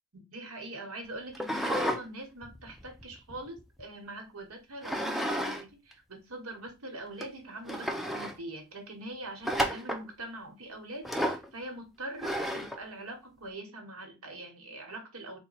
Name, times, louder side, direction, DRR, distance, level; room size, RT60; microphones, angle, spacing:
voice 1, 0.1-15.4, right 1 dB, 85° right, 1.2 m, -43 dB
sound 1, 1.3-2.0 2.4-3.8 4.8-5.6 5.9-6.0 6.7-6.8 7.2-7.3 7.7-8.4 9.4-10.1 11.0-11.5 12.2-12.8, equal, ahead, 0.3 m, -32 dB
4.1 x 2.2 x 4.0 m
head